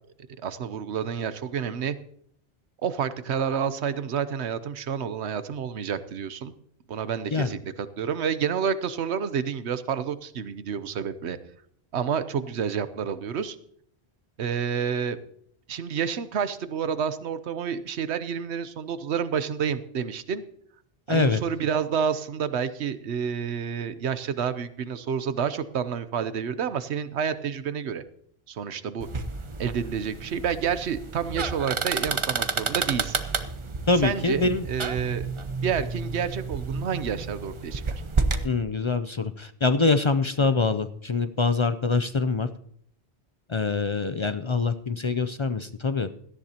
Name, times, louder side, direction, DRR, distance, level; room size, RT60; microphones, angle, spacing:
voice 1, 0.4-2.0 2.8-6.5 6.9-11.4 11.9-13.6 14.4-15.2 15.7-20.4 21.1-28.0 28.5-29.1 29.6-33.2 34.0-35.3 35.6-38.0, right 7 dB, 80° right, 13 dB, 1.1 m, -29 dB
voice 2, 21.1-21.4 33.9-34.6 38.4-42.5 43.5-46.1, left 4 dB, 45° left, 11 dB, 0.4 m, -24 dB
sound 1, 29.0-38.5, right 4 dB, 30° right, 0.7 m, -30 dB
17.5 x 13.5 x 2.9 m, 0.67 s
omnidirectional pair, 1.1 m